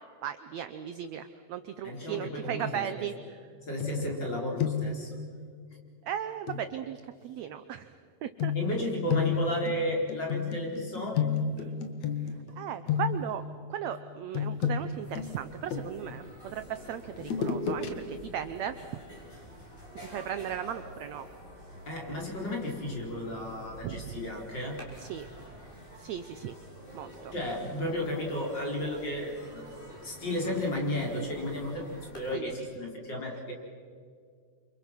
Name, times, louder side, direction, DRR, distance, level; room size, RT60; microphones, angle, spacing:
voice 1, 0.2-3.1 4.0-4.1 6.0-7.0 7.2-7.9 8.2-8.5 11.6-11.8 12.6-13.4 13.7-18.7 20.1-21.3 23.8-24.0 25.0-25.3 26.0-26.5 26.9-27.3 32.3-32.5, right 10 dB, 75° right, 10 dB, 1.7 m, -36 dB
voice 2, 1.8-3.1 3.6-5.2 8.5-11.4 21.9-24.8 27.3-29.7 30.0-33.5, left 1 dB, 30° left, -1 dB, 4.9 m, -33 dB
sound 1, 3.8-4.3 4.6-5.0 6.5-6.6 8.4-12.5 12.9-13.4 14.3-16.2 17.2-17.9 18.3-18.4, left 7 dB, 60° left, 2.9 m, -31 dB
sound 2, 14.9-32.3, equal, 15° left, 5.8 m, -48 dB
30.0 x 27.0 x 6.1 m, 2.2 s
omnidirectional pair, 3.9 m